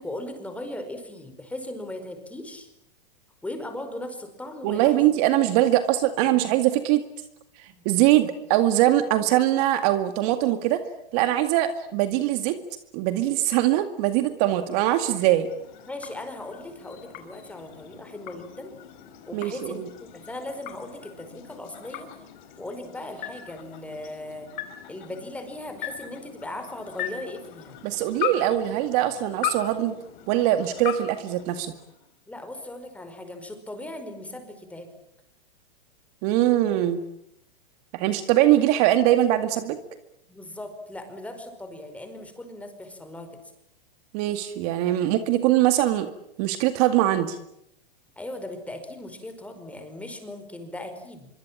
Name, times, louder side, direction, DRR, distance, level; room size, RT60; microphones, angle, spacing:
voice 1, 0.0-2.7 3.4-5.1 7.7-7.8 15.9-18.7 19.3-22.1 22.6-24.5 24.9-27.8 32.3-34.9 40.3-43.3 48.2-51.3, left 1 dB, 5° left, 7 dB, 5.1 m, -38 dB
voice 2, 4.6-7.0 7.9-10.8 11.1-12.6 12.9-15.5 19.3-19.9 27.8-29.9 30.3-31.7 36.2-37.0 37.9-39.8 44.1-46.1 46.4-47.4, right 13 dB, 40° right, 9 dB, 2.1 m, -22 dB
sound 1, 14.4-32.1, left 11 dB, 55° left, 4.7 m, -39 dB
25.5 x 24.5 x 9.0 m, 0.77 s
hypercardioid pair, 140°, 29 cm